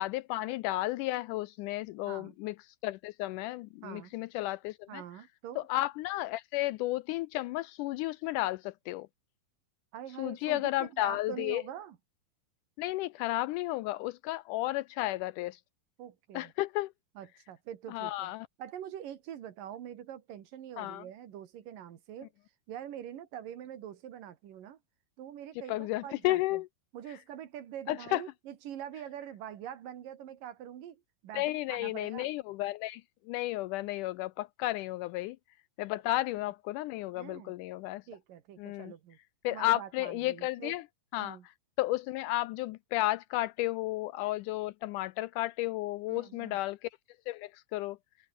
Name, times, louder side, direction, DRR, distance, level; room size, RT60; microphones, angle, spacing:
voice 1, 0.0-2.6 2.8-5.0 5.6-9.1 10.2-11.6 12.8-15.6 16.3-16.9 17.9-18.5 20.8-21.0 25.7-26.7 27.9-28.2 31.3-33.0 33.3-35.4 35.8-38.0 38.6-38.9 39.4-40.8 41.1-41.4 41.8-46.9 47.3-48.0, left 17 dB, 80° left, 1.9 m, -33 dB
voice 2, 2.0-2.4 3.8-4.1 4.9-5.7 9.9-12.0 16.0-16.5 17.2-18.3 18.6-22.3 22.7-24.8 25.2-26.6 26.9-32.3 37.2-37.5 38.1-39.2 39.5-40.8 41.2-41.5 46.1-46.6, right 10 dB, 75° right, 3.4 m, -44 dB
omnidirectional pair, 4.0 m